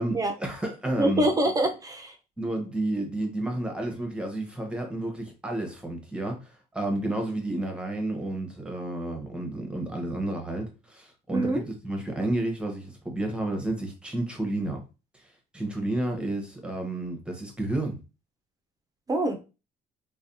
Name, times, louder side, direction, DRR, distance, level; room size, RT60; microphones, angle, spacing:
voice 1, 0.0-1.3 2.4-14.8 15.5-18.0, right 1 dB, 5° right, 1.0 m, -31 dB
voice 2, 1.0-2.1 11.3-11.6 19.1-19.4, right 1 dB, 20° right, 0.6 m, -25 dB
3.3 x 2.3 x 2.7 m
cardioid pair, 110°, 17 cm